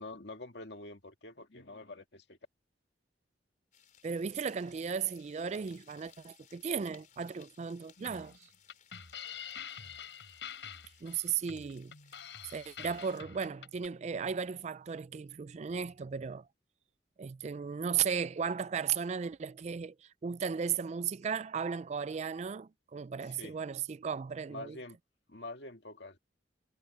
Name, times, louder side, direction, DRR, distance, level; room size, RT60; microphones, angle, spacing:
voice 1, 0.0-2.4 23.2-23.5 24.5-25.0 25.3-26.2, left 2 dB, 70° left, 2.2 m, -46 dB
sound 1, 3.7-13.2, left 9 dB, 45° left, 4.8 m, -63 dB
voice 2, 4.0-8.5 11.0-11.9 12.4-16.5 17.2-24.8, right 6 dB, 40° right, 0.3 m, -35 dB
sound 2, 8.0-13.9, left 7 dB, 85° left, 5.2 m, -46 dB
head